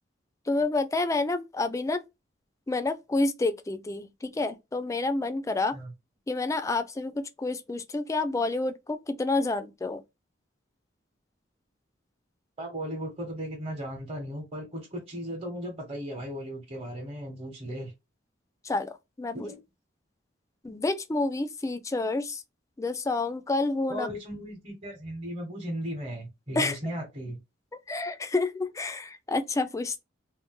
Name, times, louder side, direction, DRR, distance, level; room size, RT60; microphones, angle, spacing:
voice 1, 0.5-2.0 2.7-5.7 6.3-10.0 18.6-18.9 19.2-19.5 20.6-22.4 22.8-24.1 26.6-26.9 27.9-30.0, left 2 dB, 15° left, 0.3 m, -29 dB
voice 2, 12.6-17.9 19.3-19.6 23.9-27.4, equal, 35° right, 1.0 m, -36 dB
2.6 x 2.1 x 3.6 m
head